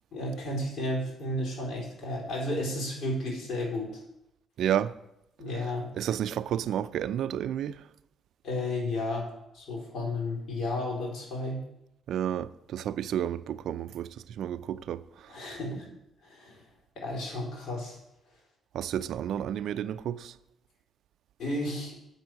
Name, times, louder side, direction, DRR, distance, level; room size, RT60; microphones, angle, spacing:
voice 1, 0.1-4.0 5.4-5.9 8.4-9.3 9.5-11.6 15.3-15.9 16.2-16.6 17.0-18.0 21.4-22.0, left 1 dB, 65° left, 4.0 m, -32 dB
voice 2, 4.6-4.9 6.0-7.8 12.1-14.1 14.4-15.0 15.4-15.5 18.7-20.3, right 10 dB, 75° right, 0.3 m, -31 dB
7.9 x 6.1 x 6.5 m
cardioid pair, 90°, 0 cm